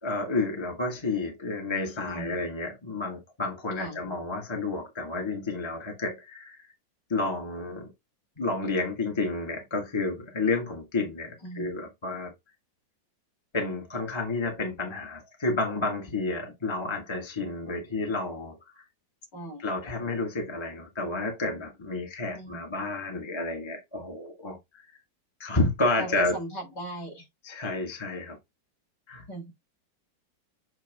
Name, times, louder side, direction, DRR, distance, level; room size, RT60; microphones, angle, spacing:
voice 1, 0.0-6.7 7.1-7.9 8.4-12.3 13.5-18.8 19.6-24.8 25.4-26.4 27.4-28.4 29.1-29.2, left 3 dB, 15° left, 1.6 m, -30 dB
voice 2, 2.1-2.4 3.8-4.0 11.4-11.7 19.3-19.6 22.3-22.6 26.0-27.3 29.3-29.4, right 2 dB, 60° left, 4.3 m, -37 dB
8.0 x 3.3 x 3.5 m
omnidirectional pair, 2.1 m